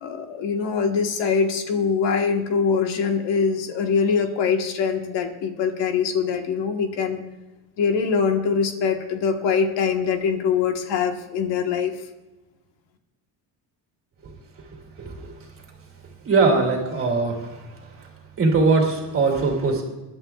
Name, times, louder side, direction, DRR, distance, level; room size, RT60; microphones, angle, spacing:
voice 1, 0.0-7.2 7.8-11.9, left 6 dB, 65° left, 5 dB, 1.5 m, -23 dB
voice 2, 15.0-15.3 16.2-17.5 18.4-19.8, right 3 dB, 30° right, 1 dB, 2.6 m, -20 dB
23.5 x 11.5 x 2.4 m, 1.1 s
cardioid pair, 175°, 45 cm